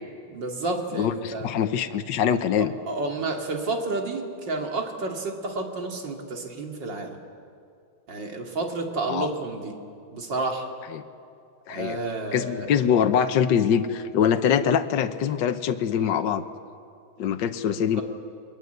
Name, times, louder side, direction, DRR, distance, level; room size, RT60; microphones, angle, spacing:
voice 1, 0.3-1.5 2.6-7.2 8.1-9.8 10.1-10.7 11.7-12.7 16.0-16.1 17.9-18.0, right 3 dB, 65° right, 2 dB, 3.2 m, -30 dB
voice 2, 0.9-2.7 9.1-9.3 10.9-11.0 11.7-12.0 12.3-16.4 17.2-18.0, left 8 dB, 70° left, 9 dB, 1.6 m, -23 dB
30.0 x 22.5 x 8.0 m, 2.4 s
omnidirectional pair, 2.1 m